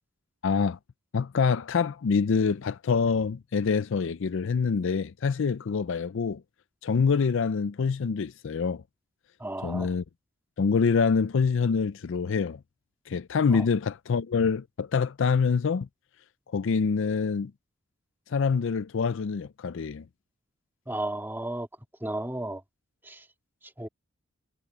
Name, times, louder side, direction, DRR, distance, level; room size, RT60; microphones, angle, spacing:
voice 1, 0.4-0.8 1.1-6.4 6.8-8.8 9.6-10.0 10.6-12.6 13.1-15.9 16.5-17.5 18.3-20.0, left 5 dB, 60° left, 0.4 m, -25 dB
voice 2, 9.4-9.9 13.5-13.6 20.9-21.7 22.0-22.6 23.0-23.2 23.8-23.9, right 1 dB, 10° right, 2.4 m, -33 dB
head